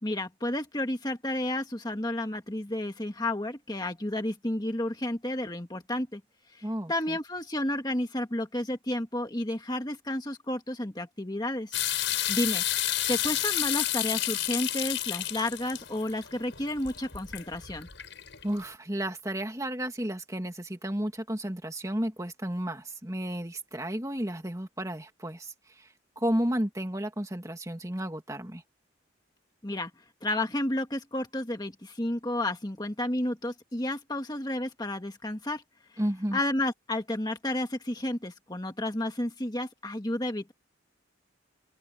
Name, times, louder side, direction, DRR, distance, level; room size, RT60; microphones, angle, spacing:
voice 1, 0.0-6.2 6.5-11.8 12.1-12.6 13.1-17.9 29.6-29.9 30.2-35.6 35.9-36.0 36.3-40.5, left 1 dB, 20° left, 1.8 m, -31 dB
voice 2, 6.6-7.2 18.4-25.9 26.2-28.6 36.0-36.4, right 1 dB, 15° right, 2.3 m, -32 dB
sound 1, 11.7-18.6, left 13 dB, 70° left, 4.8 m, -31 dB
open air
head